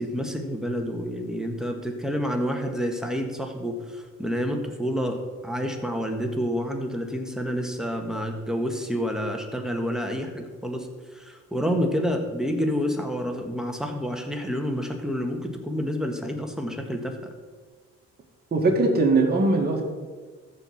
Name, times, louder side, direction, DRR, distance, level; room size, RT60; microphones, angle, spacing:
voice 1, 0.0-10.9 11.1-17.1, equal, ahead, 3 dB, 1.5 m, -28 dB
voice 2, 18.5-19.8, right 3 dB, 30° right, -1 dB, 2.1 m, -20 dB
14.0 x 4.7 x 7.1 m, 1.5 s
cardioid pair, 90°, 30 cm